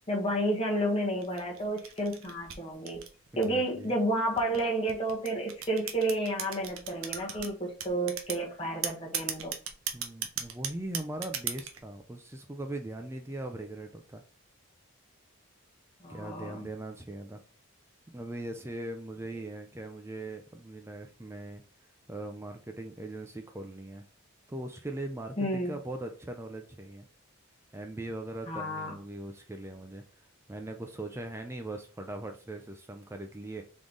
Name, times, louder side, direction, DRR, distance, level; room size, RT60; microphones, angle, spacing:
voice 1, 0.0-3.0 3.4-9.5 16.0-16.7 25.4-25.7 28.5-28.9, right 1 dB, 25° left, -1 dB, 1.2 m, -31 dB
sound 1, 1.2-3.7 4.4-7.5 7.8-8.4 8.8-11.8, right 8 dB, 70° right, 0.7 m, -36 dB
voice 2, 3.3-3.9 9.9-14.2 16.1-17.4 18.1-21.6 22.1-24.1 24.5-27.1 27.7-30.0 30.5-33.6, right 2 dB, 10° right, 5 dB, 0.4 m, -40 dB
3.6 x 3.1 x 3.9 m, 0.38 s
head